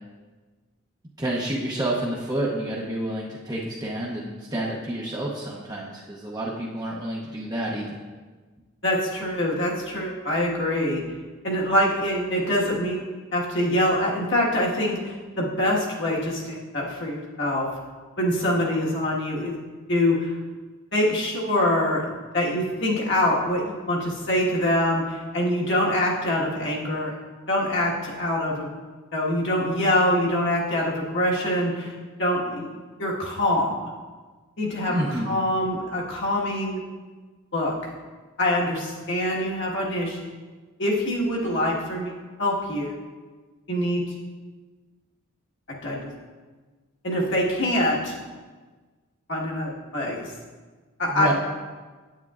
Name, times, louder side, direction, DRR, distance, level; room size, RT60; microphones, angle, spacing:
voice 1, 1.2-8.0 34.9-35.4 51.1-51.3, right 1 dB, 20° right, -4 dB, 0.6 m, -29 dB
voice 2, 8.8-11.0 11.4-13.0 13.3-17.7 18.2-19.5 19.9-20.4 20.9-22.1 22.3-27.1 27.5-28.7 29.1-33.7 34.6-34.9 35.3-36.8 37.5-37.9 38.4-40.3 40.8-42.1 42.4-43.0 43.7-44.0 45.8-46.1 47.0-48.1 49.3-50.3 51.0-51.3, left 1 dB, 55° left, -3 dB, 1.5 m, -24 dB
9.1 x 8.5 x 2.4 m, 1.4 s
head